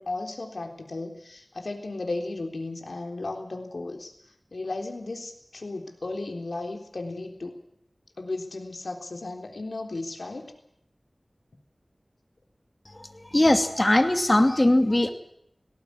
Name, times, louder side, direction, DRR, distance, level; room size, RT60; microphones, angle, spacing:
voice 1, 0.0-4.1 4.5-7.5 8.2-10.5, left 2 dB, 85° left, 4 dB, 3.6 m, -35 dB
voice 2, 12.9-15.1, left 1 dB, 30° left, 6 dB, 2.6 m, -21 dB
18.5 x 18.0 x 9.8 m, 0.73 s
wide cardioid pair, 60°, 0 cm